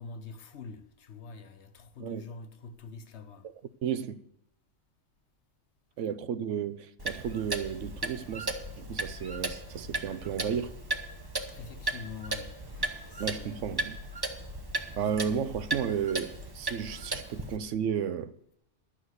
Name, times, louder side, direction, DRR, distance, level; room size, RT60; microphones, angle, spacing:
voice 1, 0.0-3.5 11.5-13.8, left 4 dB, 65° left, 1.2 m, -45 dB
voice 2, 3.8-4.2 6.0-10.8 13.2-14.0 15.0-18.3, right 8 dB, 85° right, 1.0 m, -33 dB
Clock, 7.0-17.6, right 2 dB, 20° right, 0.9 m, -36 dB
12.0 x 6.2 x 8.0 m
omnidirectional pair, 1.2 m